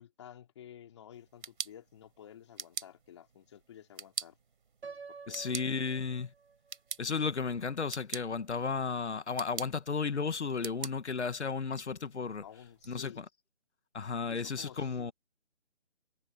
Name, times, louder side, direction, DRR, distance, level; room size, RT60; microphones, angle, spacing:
voice 1, 0.0-4.4 5.1-5.6 12.4-13.3 14.3-15.1, left 10 dB, 25° left, 2.7 m, -52 dB
sound 1, 1.1-12.9, right 6 dB, 45° right, 4.4 m, -46 dB
Piano, 4.8-6.8, right 5 dB, 65° right, 2.9 m, -49 dB
voice 2, 5.3-6.3 7.0-12.4 12.9-13.2 13.9-15.1, left 5 dB, 75° left, 1.6 m, -34 dB
hypercardioid pair, 170°, 35 cm